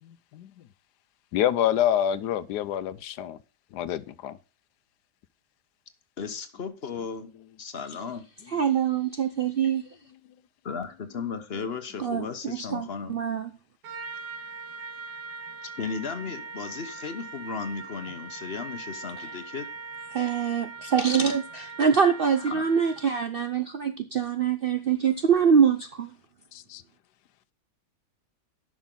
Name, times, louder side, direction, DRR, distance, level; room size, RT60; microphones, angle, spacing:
voice 1, 1.3-3.4 3.7-4.4 26.5-26.8, left 11 dB, 80° left, 1.2 m, -26 dB
voice 2, 6.2-7.3 7.6-8.2 10.6-13.2 15.6-19.7 22.5-22.6, left 5 dB, 40° left, 1.2 m, -35 dB
voice 3, 8.5-9.9 12.0-13.5 20.1-26.1, right 7 dB, 55° right, 0.6 m, -24 dB
Trumpet, 13.8-23.2, right 4 dB, 85° right, 1.8 m, -41 dB
11.0 x 6.2 x 3.8 m
omnidirectional pair, 1.7 m